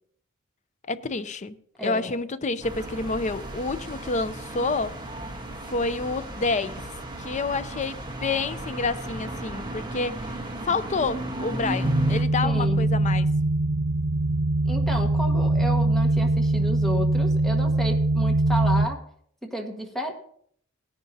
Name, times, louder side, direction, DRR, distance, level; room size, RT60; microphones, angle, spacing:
voice 1, 0.9-5.0 5.7-6.8 7.2-10.3 10.6-13.3, left 3 dB, 35° left, 0.5 m, -28 dB
voice 2, 1.8-2.1 12.4-12.9 14.6-19.0 19.5-20.1, equal, ahead, 1.6 m, -32 dB
sound 1, 2.6-12.2, right 1 dB, 20° right, 1.3 m, -34 dB
sound 2, 11.8-18.9, right 2 dB, 80° right, 0.9 m, -22 dB
18.0 x 10.5 x 2.8 m
head